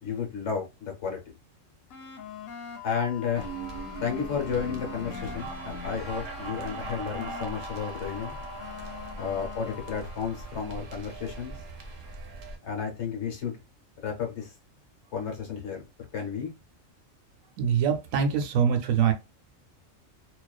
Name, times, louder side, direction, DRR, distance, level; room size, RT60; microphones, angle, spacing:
voice 1, 0.0-1.2 2.8-3.5 4.0-8.4 9.2-11.5 12.6-13.6 14.0-14.5 15.1-15.8 16.1-16.5, left 6 dB, 65° left, 1.1 m, -32 dB
sound 1, 1.9-10.7, left 8 dB, 85° left, 1.0 m, -43 dB
sound 2, 3.3-12.6, right 3 dB, 60° right, 0.8 m, -40 dB
voice 2, 17.6-19.1, right 7 dB, 85° right, 1.0 m, -24 dB
2.4 x 2.3 x 2.2 m
omnidirectional pair, 1.4 m